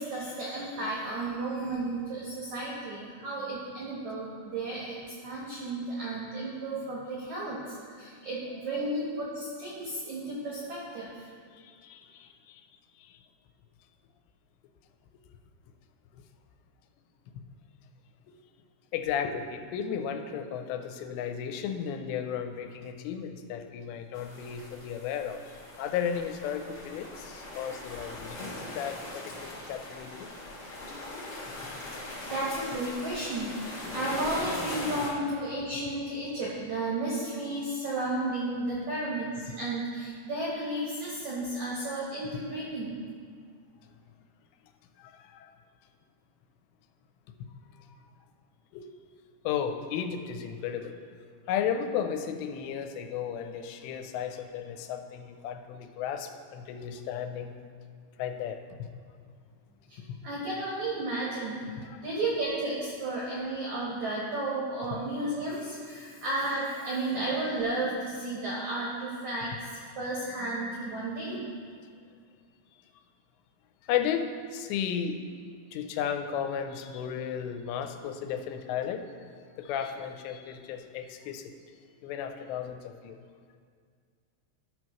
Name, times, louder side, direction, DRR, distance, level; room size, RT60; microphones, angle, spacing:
voice 1, 0.0-11.3 31.6-31.7 32.2-39.3 39.6-43.0 59.9-60.0 60.2-71.4, right 2 dB, 75° right, -6 dB, 1.7 m, -33 dB
voice 2, 11.6-12.6 13.0-13.2 18.9-25.4 25.8-30.3 45.0-45.5 47.8-47.9 48.7-48.9 49.4-50.9 51.5-57.6 58.2-58.6 61.7-62.0 71.0-71.4 73.9-74.3 74.5-75.2 75.7-79.0 79.6-81.5 82.0-83.2, left 8 dB, 90° left, 6 dB, 2.8 m, -34 dB
sound 1, 24.1-35.1, left 2 dB, 70° left, 0.9 m, -40 dB
12.5 x 6.2 x 3.0 m, 2.1 s
omnidirectional pair, 5.0 m